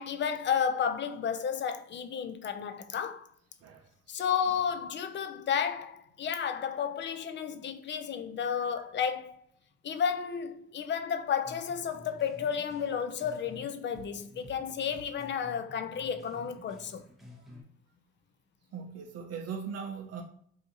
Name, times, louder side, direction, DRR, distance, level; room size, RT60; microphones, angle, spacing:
voice 1, 0.0-3.3 4.1-9.4 9.8-17.0, left 7 dB, 40° left, 0.4 m, -32 dB
sound 1, 11.4-13.7 13.9-17.6, left 1 dB, ahead, 0.8 m, -51 dB
voice 2, 18.7-20.2, right 6 dB, 55° right, 0.5 m, -39 dB
2.8 x 2.4 x 2.5 m
supercardioid pair, 65°, 31 cm